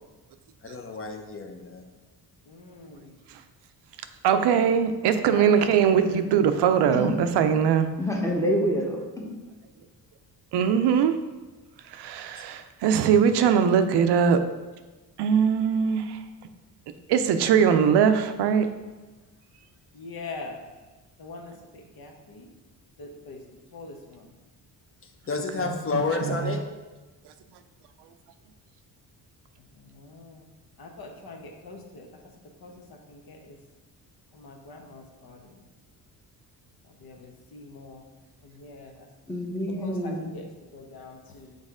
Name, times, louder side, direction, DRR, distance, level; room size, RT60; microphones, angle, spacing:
voice 1, 0.6-1.8 12.3-12.4 25.3-26.6, left 4 dB, 35° left, 4 dB, 0.7 m, -30 dB
voice 2, 2.5-3.1 5.3-6.4 19.9-20.6 21.2-22.5 23.0-23.4 23.7-24.3 29.7-30.4 30.8-32.2 32.6-32.7 33.1-33.6 34.3-35.5 37.0-38.0 38.4-39.1 39.8-41.6, left 3 dB, 65° left, 2 dB, 1.1 m, -43 dB
voice 3, 4.2-7.9 10.5-11.2 11.9-14.4 15.2-16.2 17.1-18.7 25.6-26.6, right 7 dB, 85° right, 9 dB, 0.6 m, -21 dB
voice 4, 8.0-9.3 39.3-40.3, equal, 10° left, 0 dB, 1.0 m, -27 dB
6.4 x 4.0 x 3.6 m, 1.2 s
cardioid pair, 105°, 40 cm